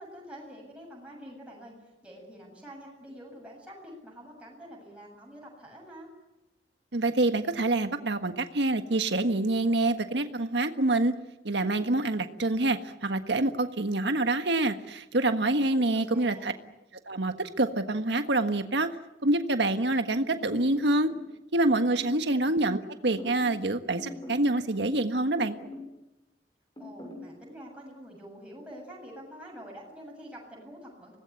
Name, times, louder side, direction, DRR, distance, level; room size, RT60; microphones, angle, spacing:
voice 1, 0.0-6.1 15.7-16.7 22.2-22.6 26.8-31.2, equal, 5° right, -2 dB, 7.6 m, -47 dB
voice 2, 6.9-11.1 11.4-16.5 17.1-18.9 19.2-21.1 21.5-25.6, right 2 dB, 80° right, 7 dB, 1.6 m, -26 dB
sound 1, 20.3-21.3 21.7-22.2 23.1-23.6 24.0-25.0 25.4-25.9 26.8-27.3, left 2 dB, 25° left, 7.1 m, -42 dB
25.5 x 19.5 x 9.7 m, 0.94 s
head